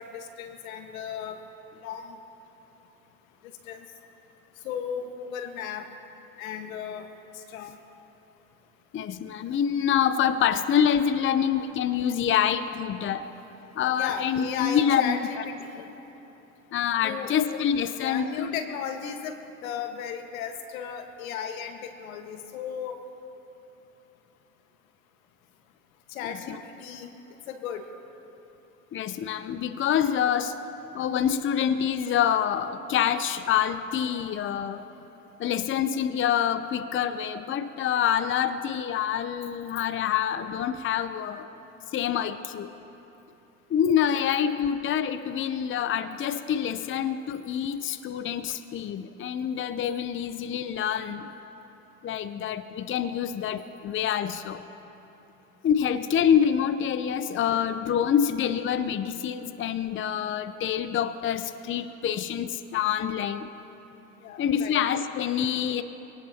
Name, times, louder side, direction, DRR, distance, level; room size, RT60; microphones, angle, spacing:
voice 1, 0.0-1.4 1.8-2.2 3.7-3.8 4.6-5.9 6.4-7.1 7.3-7.8 13.9-15.9 17.0-17.3 18.0-23.0 26.1-27.1 27.5-27.9 44.1-44.3 64.2-64.7, left 7 dB, 85° left, 6 dB, 1.6 m, -35 dB
voice 2, 8.9-13.2 13.8-15.2 16.7-18.5 26.2-26.6 28.9-30.5 30.9-34.9 35.4-41.5 41.9-42.7 43.7-51.3 52.0-54.6 55.6-63.5 64.4-65.8, left 9 dB, 30° left, 11 dB, 0.7 m, -26 dB
25.0 x 18.0 x 2.9 m, 3.0 s
hypercardioid pair, 90°, 41 cm